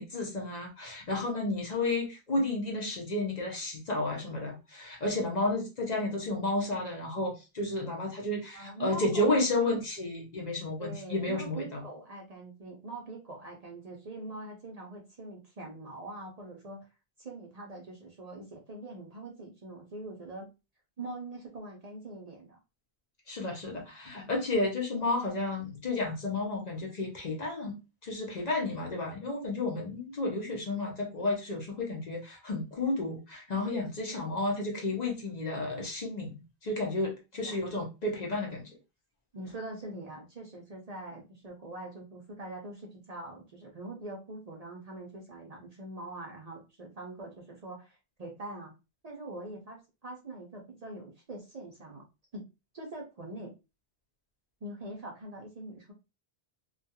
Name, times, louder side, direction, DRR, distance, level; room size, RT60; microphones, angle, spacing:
voice 1, 0.0-11.8 23.3-27.8 28.0-38.7, left 2 dB, 50° left, 0 dB, 0.7 m, -32 dB
voice 2, 8.5-9.8 10.8-16.8 17.2-20.5 21.0-22.6 37.4-37.6 39.3-48.7 49.0-52.0 52.3-52.4 52.7-53.5 54.6-55.9, right 2 dB, 50° right, 0 dB, 0.5 m, -43 dB
2.3 x 2.3 x 2.7 m, 0.27 s
omnidirectional pair, 1.0 m